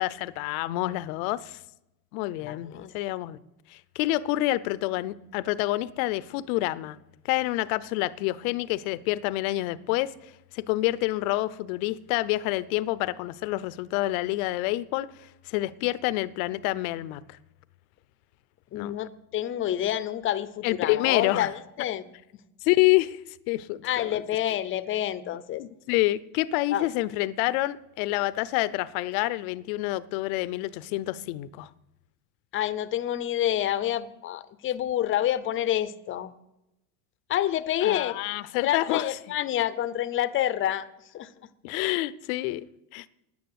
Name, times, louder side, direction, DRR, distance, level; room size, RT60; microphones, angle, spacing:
voice 1, 0.0-1.6 2.1-3.4 3.7-7.0 7.2-10.1 10.5-15.1 15.5-17.4 18.7-18.9 20.6-21.5 22.6-23.2 23.5-24.2 25.6-31.7 37.8-39.1 41.6-42.7 42.9-43.1, left 17 dB, 75° left, 0.7 m, -27 dB
voice 2, 2.4-2.9 18.7-22.0 23.8-25.6 26.7-26.9 32.5-36.3 37.3-38.1 38.6-40.9 41.1-41.3, left 12 dB, 30° left, 0.6 m, -28 dB
9.7 x 9.5 x 8.0 m
cardioid pair, 145°, 43 cm